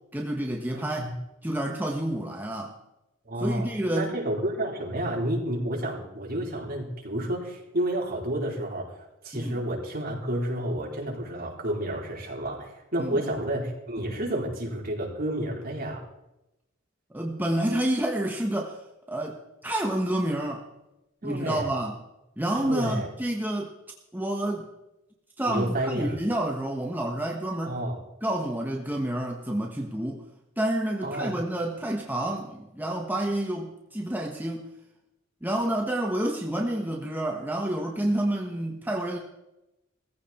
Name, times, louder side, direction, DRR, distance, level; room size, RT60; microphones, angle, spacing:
voice 1, 0.1-1.1 1.4-2.7 3.4-4.1 9.3-9.5 13.0-13.2 17.1-18.8 19.1-20.6 21.2-21.9 22.4-23.7 24.1-24.7 25.4-27.8 28.2-30.2 30.6-34.7 35.4-39.2, right 1 dB, 10° right, 1 dB, 1.3 m, -29 dB
voice 2, 0.7-1.2 3.2-16.0 21.2-21.7 22.6-23.1 25.5-26.2 27.6-27.9 31.0-31.3, right 1 dB, 50° right, -2 dB, 4.2 m, -30 dB
18.0 x 15.0 x 4.4 m, 0.92 s
head